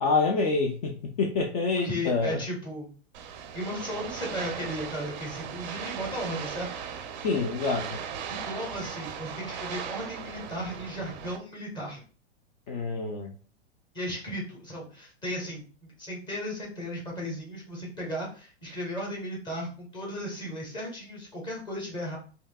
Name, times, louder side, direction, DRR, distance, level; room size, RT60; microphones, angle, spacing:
voice 1, 0.0-2.4 7.2-8.0 12.7-13.3, left 4 dB, 35° left, 0.4 m, -27 dB
voice 2, 1.8-2.9 3.5-6.8 8.3-12.0 13.9-22.2, equal, 15° left, 1.1 m, -35 dB
sound 1, 3.1-11.4, right 7 dB, 45° right, 0.5 m, -38 dB
3.2 x 2.8 x 2.2 m
hypercardioid pair, 140°, 33 cm